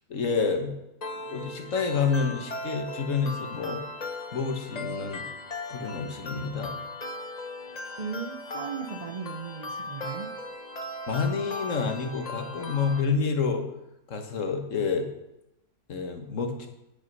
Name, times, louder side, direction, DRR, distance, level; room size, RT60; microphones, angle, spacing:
voice 1, 0.1-0.7 1.3-3.8 4.3-5.3 5.7-6.8 11.1-13.6 14.1-15.1 15.9-16.7, left 5 dB, 55° left, 5 dB, 1.6 m, -28 dB
sound 1, 1.0-13.0, left 2 dB, 35° left, 0.8 m, -38 dB
voice 2, 8.0-10.4, right 6 dB, 90° right, 5 dB, 0.3 m, -36 dB
9.2 x 8.6 x 5.4 m, 0.87 s
omnidirectional pair, 1.6 m